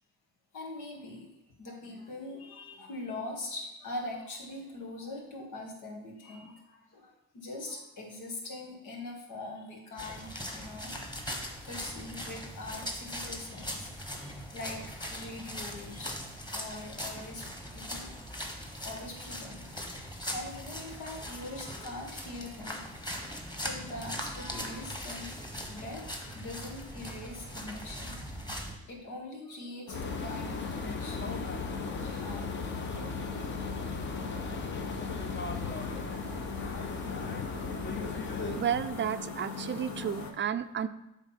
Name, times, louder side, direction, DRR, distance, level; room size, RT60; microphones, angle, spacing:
voice 1, 0.5-16.2 16.5-18.3 18.8-31.5 31.8-32.5 33.5-33.6 33.9-34.0, left 2 dB, 90° left, 0 dB, 1.8 m, -43 dB
sound 1, 10.0-28.7, equal, 15° left, 1.4 m, -40 dB
sound 2, 29.9-40.3, left 4 dB, 65° left, 1.2 m, -40 dB
sound 3, 29.9-38.6, left 4 dB, 40° left, 0.8 m, -37 dB
voice 2, 38.6-40.9, right 8 dB, 40° right, 12 dB, 0.4 m, -32 dB
8.2 x 3.6 x 5.8 m, 0.91 s
cardioid pair, 90°, 30 cm